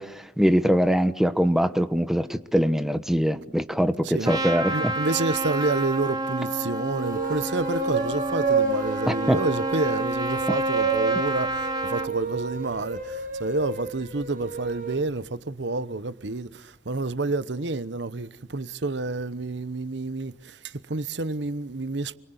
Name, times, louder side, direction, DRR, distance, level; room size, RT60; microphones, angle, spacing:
voice 1, 0.0-4.9 9.1-9.4, equal, ahead, 1.1 m, -23 dB
voice 2, 4.0-22.2, right 3 dB, 80° right, 1.0 m, -29 dB
Trumpet, 4.2-12.1, right 1 dB, 25° right, 2.3 m, -29 dB
sound 1, 6.9-15.1, right 4 dB, 50° right, 5.6 m, -30 dB
29.0 x 23.5 x 8.1 m
head